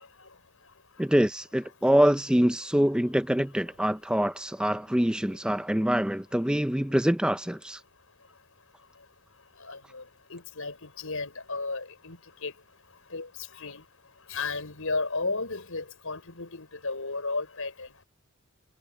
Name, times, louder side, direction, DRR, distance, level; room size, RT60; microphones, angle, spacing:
voice 1, 1.0-7.8, equal, 5° right, 0.4 m, -25 dB
voice 2, 9.6-10.0 10.3-12.5 13.1-13.3 13.6-13.8 14.3-17.9, left 3 dB, 75° left, 4.7 m, -34 dB
head